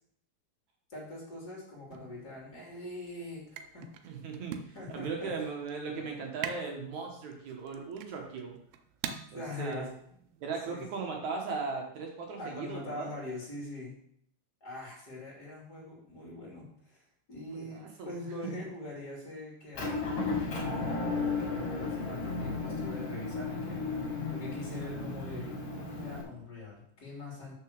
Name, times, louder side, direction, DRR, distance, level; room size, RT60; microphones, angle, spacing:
voice 1, 0.9-3.9 4.7-5.3 9.3-9.9 10.6-10.8 12.4-14.0 14.6-17.0 17.3-20.2 21.4-27.5, left 2 dB, 25° left, -3 dB, 3.2 m, -43 dB
sound 1, 1.9-10.7, right 8 dB, 75° right, 2.3 m, -45 dB
voice 2, 4.0-8.6 9.3-9.8 10.4-13.1 17.5-18.1, right 4 dB, 60° right, 1 dB, 2.3 m, -38 dB
Motor vehicle (road) / Engine, 19.7-26.2, left 3 dB, 50° left, 3.3 m, -34 dB
6.6 x 6.0 x 6.5 m, 0.68 s
omnidirectional pair, 4.5 m